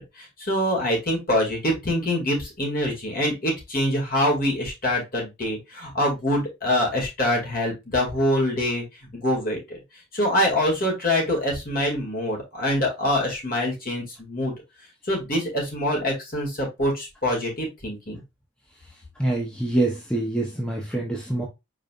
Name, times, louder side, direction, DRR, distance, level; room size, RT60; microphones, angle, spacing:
voice 1, 0.2-8.8 9.1-9.8 10.1-14.5 15.0-18.2, left 1 dB, 45° left, 2.2 m, -25 dB
voice 2, 19.2-21.4, right 2 dB, 5° left, 0.8 m, -25 dB
5.2 x 4.0 x 2.4 m
head